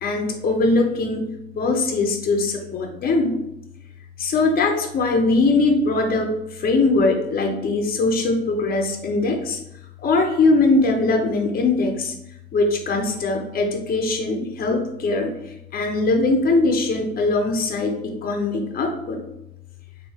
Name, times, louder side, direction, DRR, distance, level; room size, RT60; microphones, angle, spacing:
voice 1, 0.0-1.3 1.6-3.4 4.2-9.6 10.0-12.1 12.5-15.3 15.7-19.2, left 3 dB, 50° left, 2 dB, 0.7 m, -21 dB
3.2 x 2.7 x 4.2 m, 0.87 s
cardioid pair, 90°, 20 cm